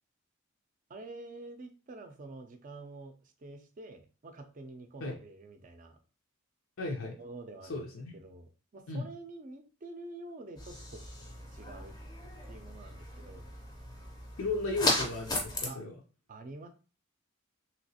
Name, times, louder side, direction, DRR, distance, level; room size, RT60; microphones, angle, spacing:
voice 1, 0.9-6.0 7.2-7.8 8.1-11.0 11.5-12.0 12.5-13.5 15.7-15.8 16.3-16.7, right 2 dB, 40° right, 7 dB, 0.4 m, -47 dB
voice 2, 6.8-7.2 7.7-8.2 8.9-9.1 14.4-15.9, left 2 dB, 80° left, 0 dB, 0.6 m, -35 dB
sound 1, 10.6-15.7, left 1 dB, 20° left, 0.5 m, -36 dB
3.1 x 2.8 x 2.8 m, 0.35 s
head